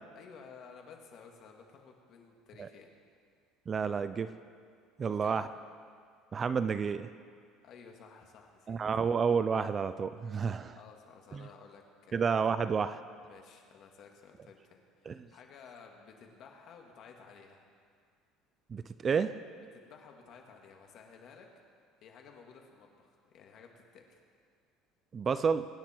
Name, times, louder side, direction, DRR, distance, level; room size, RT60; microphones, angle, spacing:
voice 1, 0.1-2.9 5.0-5.5 7.6-8.8 10.8-12.3 13.2-17.6 19.7-21.5 22.0-24.2, left 6 dB, 50° left, 2 dB, 2.1 m, -54 dB
voice 2, 3.7-4.3 5.0-5.5 6.3-7.1 8.7-10.8 11.3-11.4 12.1-13.0 15.1-15.2 18.7-19.3 25.1-25.7, right 6 dB, 25° right, 13 dB, 0.4 m, -30 dB
24.0 x 9.9 x 4.5 m, 2.1 s
cardioid pair, 140°, 0 cm